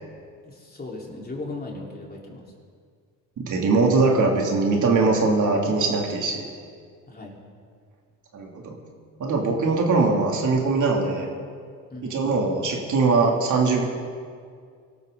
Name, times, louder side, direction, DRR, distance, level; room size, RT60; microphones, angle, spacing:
voice 1, 0.4-2.4 7.1-7.4 11.9-12.2, left 2 dB, 25° left, -2 dB, 4.2 m, -37 dB
voice 2, 3.4-6.5 8.3-8.8 9.2-11.3 12.0-13.8, right 3 dB, 55° right, 0 dB, 3.1 m, -21 dB
23.5 x 13.0 x 4.0 m, 2.1 s
supercardioid pair, 80°, 37 cm